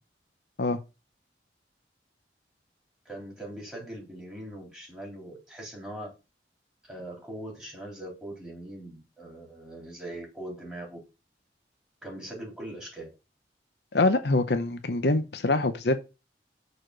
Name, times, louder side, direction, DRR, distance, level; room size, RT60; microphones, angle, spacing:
voice 1, 3.1-6.1 6.9-11.0 12.0-13.1, right 1 dB, 5° right, 4.1 m, -41 dB
voice 2, 13.9-16.0, left 2 dB, 70° left, 0.8 m, -24 dB
6.8 x 4.3 x 6.2 m
head